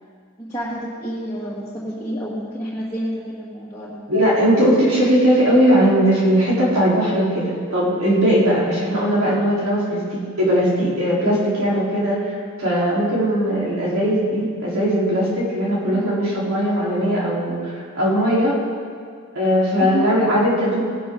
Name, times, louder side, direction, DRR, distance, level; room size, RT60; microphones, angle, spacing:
voice 1, 0.4-4.0 15.9-16.1 19.8-20.2, equal, 15° left, -9 dB, 2.0 m, -29 dB
voice 2, 4.1-18.5 19.3-20.8, equal, 80° right, -7 dB, 4.0 m, -19 dB
18.0 x 11.5 x 3.9 m, 2.1 s
head